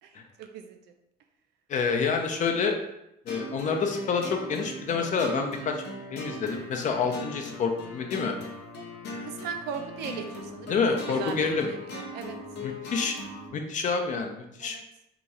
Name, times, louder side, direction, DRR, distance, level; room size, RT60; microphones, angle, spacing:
voice 1, 0.0-0.9 9.2-10.8 11.1-12.4 14.6-14.8, right 7 dB, 80° right, 6 dB, 0.5 m, -38 dB
voice 2, 1.7-2.8 3.3-5.8 6.1-8.4 10.7-11.7 12.6-13.2 13.5-14.8, left 5 dB, 45° left, 3 dB, 0.6 m, -28 dB
sound 1, 3.3-13.5, left 1 dB, 85° left, 0.9 m, -39 dB
2.9 x 2.4 x 4.1 m, 0.83 s
cardioid pair, 110°, 17 cm